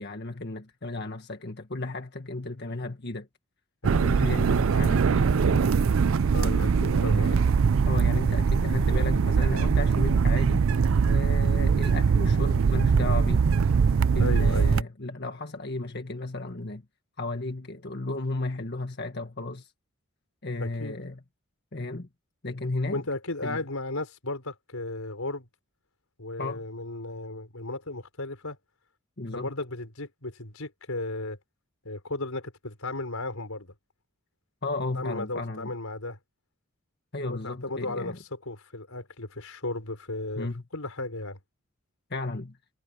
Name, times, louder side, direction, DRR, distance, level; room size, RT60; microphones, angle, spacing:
voice 1, 0.0-3.3 3.9-5.8 6.4-7.5 7.8-10.6 11.1-13.5 14.1-16.8 17.2-19.7 20.4-21.2 21.7-22.1 22.4-23.0 23.4-23.6 26.4-26.6 29.2-29.5 34.6-35.7 37.1-38.2 40.4-40.6 42.1-42.6, left 2 dB, 50° left, 1.7 m, -34 dB
voice 2, 3.8-4.2 6.3-7.3 14.2-14.8 20.6-20.9 22.9-25.5 26.2-28.6 29.3-31.4 31.8-33.7 34.9-36.2 37.2-41.4, left 2 dB, 90° left, 4.7 m, -35 dB
sound 1, 3.8-14.8, right 5 dB, 70° right, 0.4 m, -22 dB
head